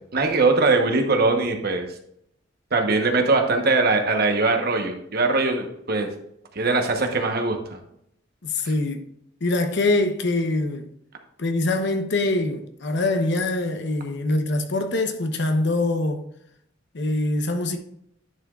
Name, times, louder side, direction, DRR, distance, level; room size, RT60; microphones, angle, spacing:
voice 1, 0.1-1.9 2.7-6.1 6.5-7.8, right 3 dB, 55° right, 1.1 m, -21 dB
voice 2, 8.4-9.0 9.4-10.9 11.4-16.2 16.9-17.8, left 2 dB, 65° left, 0.9 m, -24 dB
10.5 x 5.9 x 2.4 m
head